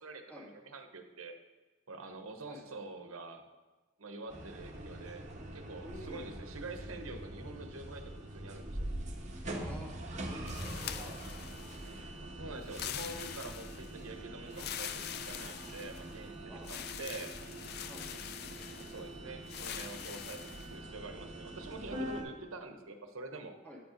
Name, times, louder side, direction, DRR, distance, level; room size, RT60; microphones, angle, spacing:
voice 1, 0.0-1.3 1.9-3.4 4.0-5.3 5.5-8.9 12.3-17.4 18.7-23.6, right 3 dB, 75° right, 6 dB, 0.9 m, -46 dB
sound 1, 4.3-22.2, right 1 dB, 35° right, 1.1 m, -44 dB
voice 2, 5.8-6.2 9.5-11.2 16.5-16.7 17.8-18.1 23.6-23.8, equal, 5° left, -4 dB, 2.1 m, -49 dB
sound 2, 10.5-12.0 12.6-14.0 14.5-16.2 16.6-19.0 19.5-20.7, left 10 dB, 50° left, 0.4 m, -44 dB
8.8 x 5.3 x 5.0 m, 1.3 s
head